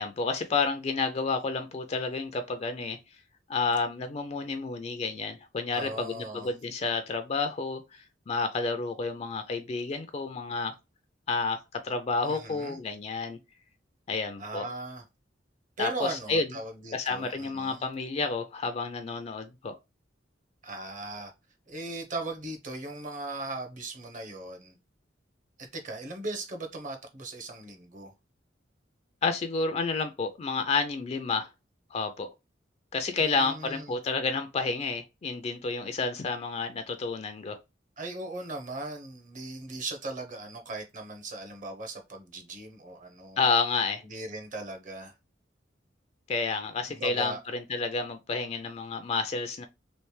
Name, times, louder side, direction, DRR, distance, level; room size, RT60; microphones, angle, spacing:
voice 1, 0.0-3.0 3.5-10.7 11.3-13.4 14.1-14.7 15.8-16.5 16.9-19.7 29.2-31.5 31.9-32.3 32.9-37.6 43.4-44.0 46.3-49.6, left 4 dB, 35° left, 0.4 m, -30 dB
voice 2, 5.7-6.5 12.2-12.8 14.4-15.0 15.8-17.8 20.6-21.3 21.7-24.8 25.6-28.1 33.2-33.9 38.0-43.4 44.1-45.1 46.9-47.4, right 2 dB, 45° right, 0.8 m, -38 dB
3.2 x 2.9 x 3.1 m
head